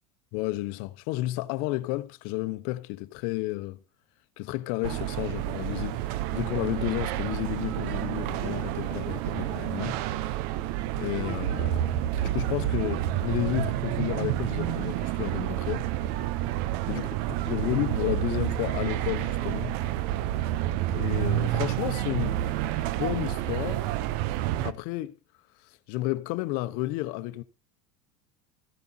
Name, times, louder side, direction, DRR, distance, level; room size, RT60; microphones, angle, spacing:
voice 1, 0.3-3.8 4.4-10.4 11.0-11.9 12.2-15.9 16.9-19.8 20.9-22.6 23.0-23.8 24.6-25.2 25.9-27.4, left 18 dB, 65° left, 1.0 m, -32 dB
sound 1, 4.8-24.7, right 14 dB, 60° right, 0.7 m, -29 dB
15.0 x 12.0 x 2.8 m
supercardioid pair, 110°, 17 cm